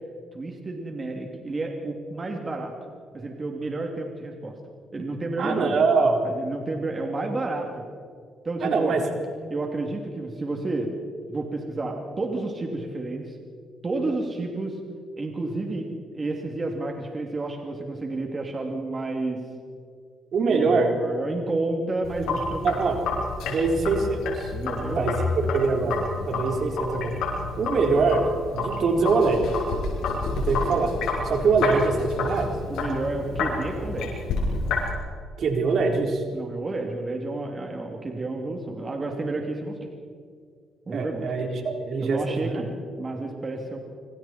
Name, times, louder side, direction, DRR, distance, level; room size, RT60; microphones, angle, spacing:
voice 1, 0.3-2.7 3.1-4.6 4.9-5.9 6.2-7.8 8.4-9.0 9.5-10.9 11.3-13.4 13.8-14.8 15.2-19.4 20.4-22.8 24.5-25.3 32.7-34.2 36.3-39.9 40.9-41.3 42.0-42.7 43.0-43.8, right 2 dB, 30° right, 2 dB, 3.0 m, -30 dB
voice 2, 5.4-6.2 8.6-9.0 20.3-20.9 22.6-23.0 23.5-24.5 25.0-25.1 25.5-26.0 26.3-27.1 27.6-28.2 28.5-29.4 30.3-30.9 31.2-32.5 35.4-36.2 40.9-42.6, right 4 dB, 60° right, 2 dB, 4.0 m, -23 dB
Sink (filling or washing), 22.0-34.9, left 3 dB, 85° left, 6.3 m, -29 dB
27.0 x 26.0 x 4.5 m, 2.2 s
cardioid pair, 90°, 0 cm